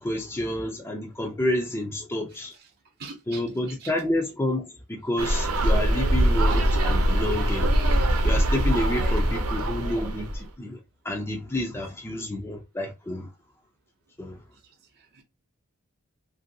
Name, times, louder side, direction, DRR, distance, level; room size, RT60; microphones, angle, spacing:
voice 1, 0.0-2.5 3.3-7.7 8.2-10.8 11.0-13.3 14.2-14.4, left 1 dB, 10° left, 0.4 m, -29 dB
voice 2, 3.0-3.9 9.0-9.3 11.5-11.6 15.0-15.2, right 4 dB, 50° right, 0.6 m, -43 dB
sound 1, 5.2-10.4, right 1 dB, 90° right, 0.7 m, -22 dB
2.9 x 2.6 x 2.6 m
head